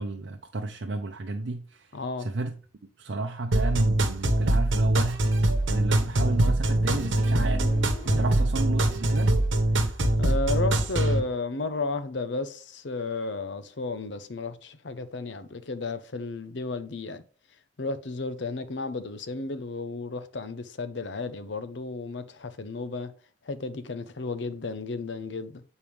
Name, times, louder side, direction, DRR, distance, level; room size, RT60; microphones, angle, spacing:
voice 1, 0.0-2.6 3.0-5.4 5.7-9.4, right 2 dB, 70° right, 0.6 m, -32 dB
voice 2, 1.9-2.3 8.1-8.2 10.2-17.2 17.8-23.1 23.4-25.6, left 3 dB, 70° left, 0.7 m, -33 dB
sound 1, 3.5-11.2, right 1 dB, 85° right, 1.0 m, -23 dB
Motorcycle, 5.6-9.0, left 2 dB, 30° left, 1.4 m, -43 dB
8.5 x 4.4 x 3.5 m
head